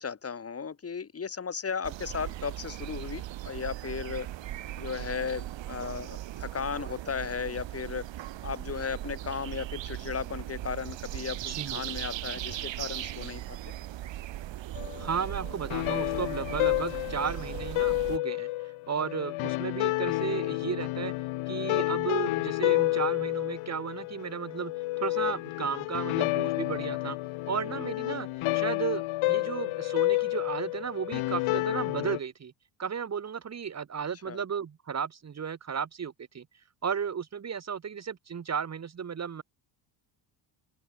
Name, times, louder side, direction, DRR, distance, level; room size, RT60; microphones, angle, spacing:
voice 1, 0.0-4.3 4.8-8.1 8.4-13.6 34.3-34.4, left 6 dB, 30° left, 3.8 m, -35 dB
sound 1, 1.8-18.2, right 14 dB, 60° right, 2.9 m, -38 dB
voice 2, 11.5-11.8 15.0-21.1 21.5-24.7 25.0-27.2 27.5-28.3 28.5-32.5 32.8-36.5 36.8-39.4, right 7 dB, 30° right, 2.3 m, -34 dB
sound 2, 14.7-32.2, left 19 dB, 70° left, 1.1 m, -30 dB
cardioid pair, 130°, 50 cm